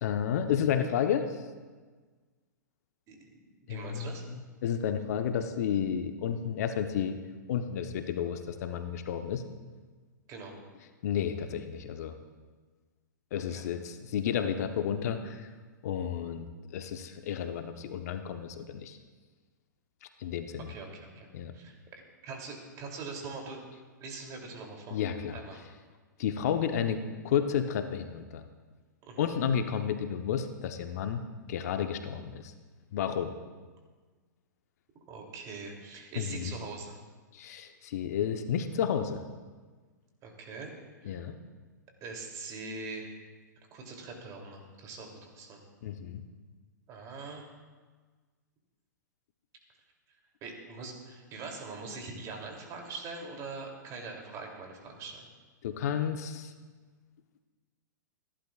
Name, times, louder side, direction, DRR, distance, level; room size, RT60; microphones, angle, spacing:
voice 1, 0.0-1.3 3.7-7.1 7.5-9.4 11.0-12.2 13.3-15.5 15.8-16.5 16.7-19.0 20.2-20.7 21.3-21.5 24.9-25.4 26.2-28.4 29.2-32.5 32.9-33.3 36.2-36.5 37.3-39.2 41.0-41.3 45.8-46.2 55.6-56.5, left 8 dB, 55° left, 7 dB, 1.0 m, -31 dB
voice 2, 3.1-4.2 10.3-10.6 13.3-13.7 20.6-23.6 24.0-25.0 25.3-25.7 29.0-29.3 35.1-37.0 40.2-40.7 41.0-41.2 42.0-43.1 43.7-45.6 46.9-47.5 50.4-55.3, right 4 dB, 35° right, 1 dB, 3.0 m, -43 dB
28.0 x 11.5 x 2.5 m, 1.4 s
figure-of-eight pair, 110°, 10 cm